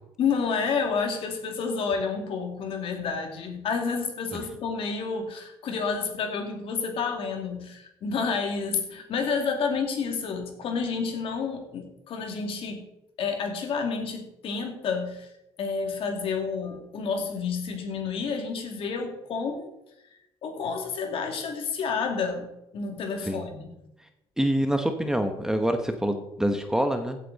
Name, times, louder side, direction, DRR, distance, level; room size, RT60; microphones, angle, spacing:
voice 1, 0.2-12.8 13.2-15.3 15.6-19.7 20.4-23.7, left 5 dB, 60° left, 3 dB, 2.7 m, -30 dB
voice 2, 24.4-27.2, right 1 dB, 5° right, 6 dB, 1.1 m, -26 dB
15.5 x 8.5 x 4.2 m, 0.87 s
cardioid pair, 125°, 10 cm